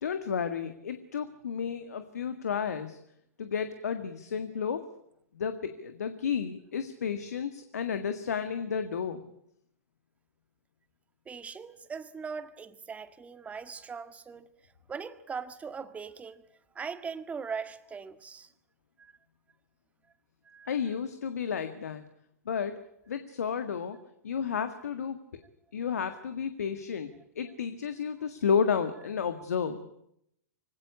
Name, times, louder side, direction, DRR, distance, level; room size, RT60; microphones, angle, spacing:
voice 1, 0.0-3.0 3.4-4.8 5.3-9.2 20.7-22.0 22.5-22.8 23.1-24.0 24.2-25.2 25.7-29.9, left 7 dB, 75° left, 1.8 m, -32 dB
voice 2, 11.3-14.5 14.9-16.4 16.8-18.5 19.0-19.1 20.5-20.7, right 5 dB, 15° right, 1.8 m, -40 dB
24.5 x 17.0 x 9.7 m
hypercardioid pair, 110°, 9 cm